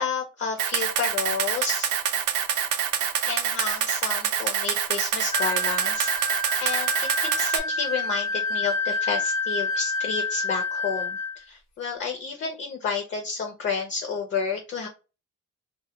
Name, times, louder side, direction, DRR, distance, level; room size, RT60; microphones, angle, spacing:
voice 1, 0.0-1.9 3.3-6.3 6.6-14.9, left 5 dB, 40° left, 2 dB, 0.4 m, -30 dB
Camera, 0.6-7.6, right 9 dB, 75° right, 0.5 m, -26 dB
sound 1, 5.3-11.4, left 2 dB, 75° left, 0.8 m, -28 dB
2.1 x 2.1 x 2.9 m, 0.31 s
wide cardioid pair, 180°, 30 cm